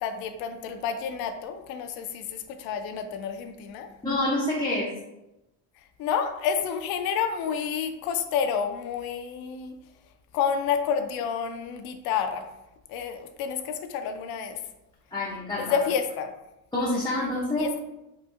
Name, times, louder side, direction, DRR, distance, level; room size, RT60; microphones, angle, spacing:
voice 1, 0.0-3.9 6.0-9.8 10.3-12.4 12.9-14.6 15.6-16.3 17.6-17.8, left 7 dB, 70° left, 7 dB, 0.5 m, -29 dB
voice 2, 4.0-4.9 15.1-15.8 16.7-17.7, left 1 dB, 10° left, -6 dB, 0.5 m, -27 dB
3.8 x 2.4 x 2.4 m, 0.94 s
cardioid pair, 105°, 38 cm